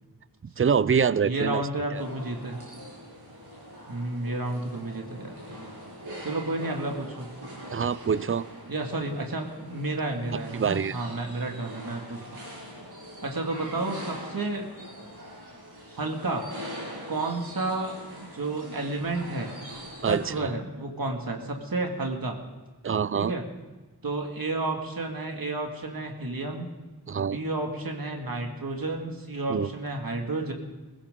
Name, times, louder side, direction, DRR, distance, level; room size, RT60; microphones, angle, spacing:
voice 1, 0.4-1.6 1.9-2.0 7.7-8.4 10.5-11.0 20.0-20.5 22.8-23.3 27.1-27.4 29.5-29.7, right 6 dB, 35° right, 18 dB, 0.5 m, -25 dB
voice 2, 1.2-2.6 3.9-5.3 6.2-7.3 8.7-12.4 13.2-14.7 15.9-16.5 17.1-18.0 18.3-19.5 20.1-22.4 23.1-23.4 24.0-26.7 27.1-30.5, right 2 dB, 65° right, 2 dB, 2.3 m, -31 dB
sound 1, 1.9-20.4, equal, 85° right, 7.3 m, -43 dB
21.5 x 16.5 x 3.8 m, 1.2 s
wide cardioid pair, 75°, 38 cm